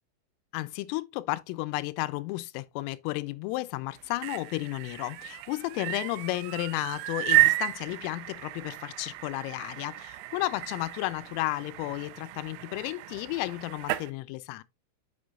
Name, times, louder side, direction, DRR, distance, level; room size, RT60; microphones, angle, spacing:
voice 1, 0.5-14.6, left 19 dB, 85° left, 3.2 m, -33 dB
sound 1, 4.0-14.1, right 18 dB, 85° right, 2.6 m, -32 dB
7.8 x 6.1 x 2.4 m
omnidirectional pair, 5.8 m